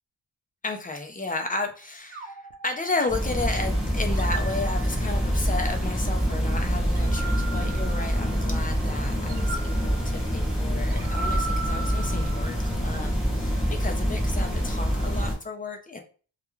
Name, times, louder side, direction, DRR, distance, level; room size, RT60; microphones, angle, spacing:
voice 1, 0.6-12.6 12.8-16.0, left 3 dB, 20° left, 4 dB, 0.3 m, -33 dB
sound 1, 2.1-3.5 4.1-5.4 6.9-8.6 9.3-12.8, right 4 dB, 75° right, 0.6 m, -38 dB
sound 2, 3.1-15.4, equal, ahead, 0.8 m, -26 dB
2.3 x 2.2 x 3.0 m, 0.38 s
wide cardioid pair, 125°, 48 cm